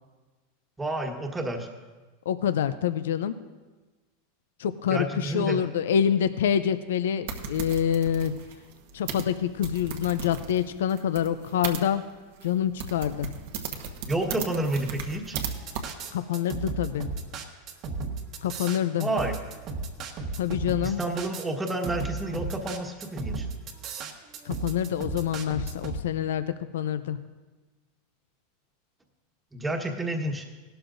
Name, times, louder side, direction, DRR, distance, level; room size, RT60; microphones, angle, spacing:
voice 1, 0.8-1.7 4.9-5.6 14.1-15.4 19.0-19.3 20.8-23.5 29.5-30.5, right 1 dB, 10° right, 3 dB, 1.3 m, -30 dB
voice 2, 2.3-3.3 4.6-8.3 8.9-12.0 12.4-13.3 16.1-17.1 18.4-19.1 20.4-21.0 24.4-26.5 26.7-27.2, left 9 dB, 85° left, 12 dB, 0.4 m, -26 dB
sound 1, 7.3-11.8 12.4-12.5 12.8-15.5 15.7-15.9, right 6 dB, 70° right, 1.1 m, -36 dB
sound 2, 15.3-26.0, right 4 dB, 45° right, 1.2 m, -34 dB
17.0 x 12.5 x 2.6 m, 1.3 s
supercardioid pair, 130°, 0 cm